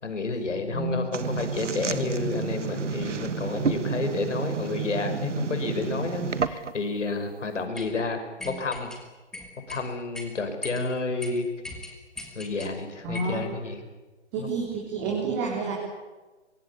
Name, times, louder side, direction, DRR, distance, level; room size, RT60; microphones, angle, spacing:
voice 1, 0.0-8.9 9.7-11.5 12.3-13.8 14.4-14.5, left 3 dB, 85° left, 6 dB, 6.0 m, -30 dB
voice 2, 0.7-1.1 13.0-13.4 14.3-15.7, right 3 dB, 20° right, -2 dB, 3.9 m, -29 dB
sound 1, 1.1-6.9, right 5 dB, 90° right, 1.8 m, -30 dB
sound 2, 7.8-7.9 8.4-9.0 9.3-9.8 10.1-10.3 10.6-10.8 11.2-11.3 11.6-12.7 13.1-13.4, left 2 dB, ahead, 1.4 m, -39 dB
24.0 x 23.5 x 8.6 m, 1.2 s
hypercardioid pair, 170°, 36 cm